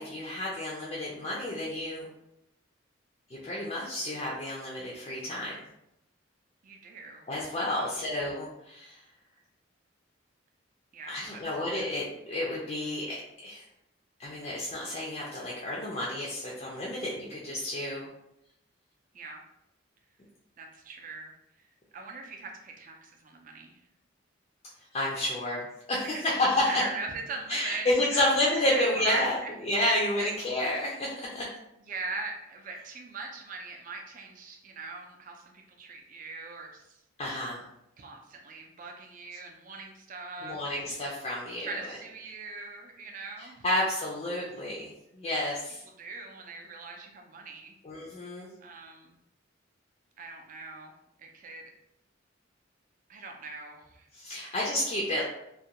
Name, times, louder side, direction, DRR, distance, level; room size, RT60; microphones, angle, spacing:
voice 1, 0.0-2.1 3.3-5.5 7.3-9.0 11.1-13.6 14.2-18.1 24.9-26.8 27.5-29.4 29.6-31.5 37.2-37.6 40.4-42.0 43.4-45.8 47.8-48.5 54.1-55.2, left 1 dB, 30° left, -5 dB, 0.4 m, -30 dB
voice 2, 6.6-7.3 7.6-7.9 10.9-11.2 11.7-11.9 19.1-19.4 20.6-21.3 21.9-23.8 26.1-28.4 28.7-29.5 30.2-30.3 31.9-37.0 38.0-40.8 41.6-43.6 45.3-45.4 46.0-47.7 48.6-49.2 50.2-50.9 51.2-51.6 53.1-54.6, right 3 dB, 40° right, 1 dB, 0.4 m, -41 dB
2.4 x 2.2 x 2.8 m, 0.82 s
head